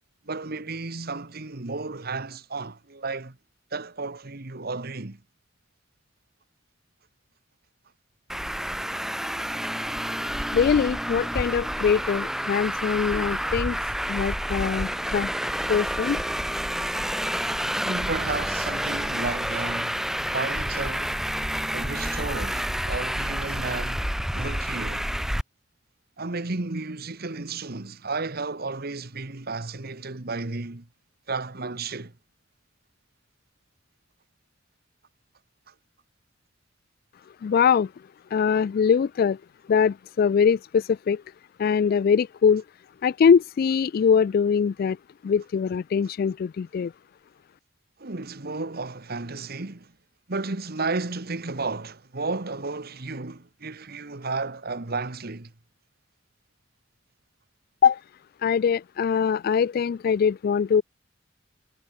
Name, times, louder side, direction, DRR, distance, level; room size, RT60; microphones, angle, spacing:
voice 1, 0.2-3.4 3.7-5.2 14.6-14.7 17.8-20.1 20.3-21.2 21.7-24.0 24.3-25.1 26.2-30.9 31.3-32.1 35.7-35.8 48.0-49.9 50.3-55.5, right 3 dB, 55° right, 1.5 m, -33 dB
Traffic noise roadway noise, 8.3-25.4, equal, ahead, 0.9 m, -29 dB
voice 2, 10.5-13.8 14.1-15.3 15.7-16.2 37.4-37.9 38.3-39.4 39.7-41.2 41.6-42.6 43.0-45.0 45.2-46.9 57.8-58.0 58.4-60.8, left 6 dB, 50° left, 0.3 m, -22 dB
head